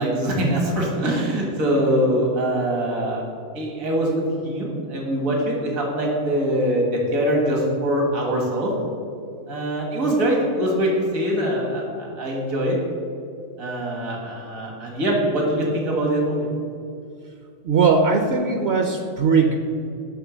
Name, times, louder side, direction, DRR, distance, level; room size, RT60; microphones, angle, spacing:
voice 1, 0.0-3.2 3.6-8.7 9.5-12.8 13.6-16.5, right 1 dB, 80° right, -1 dB, 2.0 m, -23 dB
voice 2, 17.6-19.5, right 5 dB, 60° right, 4 dB, 0.8 m, -19 dB
10.5 x 3.6 x 6.1 m, 2.5 s
omnidirectional pair, 1.4 m